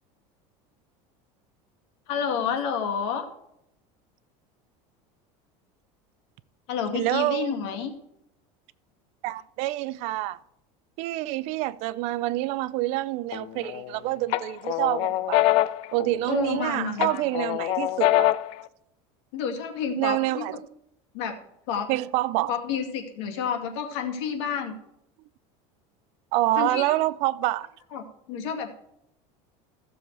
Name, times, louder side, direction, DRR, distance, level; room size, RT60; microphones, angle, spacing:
voice 1, 2.1-3.3 6.7-7.9 16.3-17.2 19.3-20.4 21.1-21.4 21.7-21.9 22.5-24.8 26.6-26.8 27.9-28.7, left 7 dB, 70° left, 2.2 m, -29 dB
voice 2, 6.9-7.6 9.2-10.4 11.0-15.4 15.9-18.3 20.0-20.6 21.9-22.5 26.3-27.7, right 16 dB, 45° right, 0.4 m, -27 dB
sound 1, 13.3-13.9 14.3-16.6 17.0-18.6, left 15 dB, 40° left, 0.4 m, -24 dB
14.5 x 7.1 x 4.7 m
cardioid pair, 180°, 15 cm